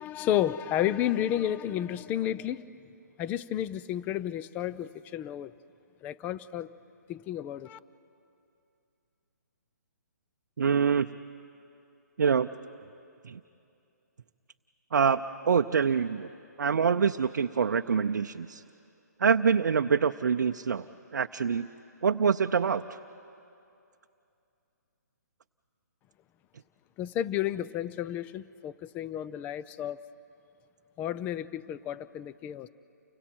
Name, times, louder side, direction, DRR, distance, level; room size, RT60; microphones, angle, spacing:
voice 1, 0.0-2.7 3.2-5.5 6.0-6.7 7.1-7.8 27.0-30.0 31.0-32.7, left 11 dB, 15° left, 0.4 m, -31 dB
voice 2, 10.6-11.2 12.2-12.5 13.2-13.4 14.9-16.3 16.6-18.6 19.2-20.9 21.1-21.7 22.0-23.0, right 6 dB, 75° right, 0.6 m, -25 dB
30.0 x 25.0 x 4.5 m
hypercardioid pair, 145°, 10 cm